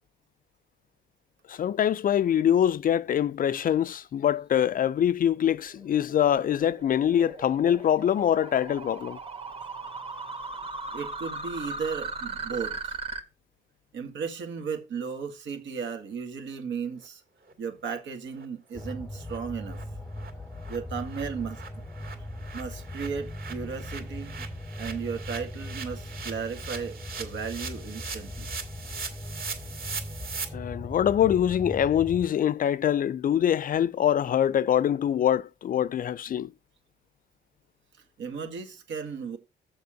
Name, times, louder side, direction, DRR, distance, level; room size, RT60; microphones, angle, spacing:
voice 1, 1.5-9.2 30.5-36.5, left 10 dB, 45° left, 0.4 m, -24 dB
sound 1, 5.2-13.2, right 3 dB, 30° right, 1.5 m, -38 dB
voice 2, 10.9-13.0 13.9-17.2 17.6-19.8 20.7-21.8 22.5-24.5 24.8-28.5 38.2-39.4, right 6 dB, 70° right, 1.8 m, -35 dB
sound 2, 17.5-17.6 17.9-18.0 18.3-18.5 18.8-18.9 19.2-19.4 19.7-19.8 20.2-20.3 20.5-30.4, right 5 dB, 50° right, 2.4 m, -40 dB
sound 3, 18.7-32.3, left 1 dB, 10° left, 0.8 m, -39 dB
6.8 x 5.3 x 6.3 m
cardioid pair, 90°, 20 cm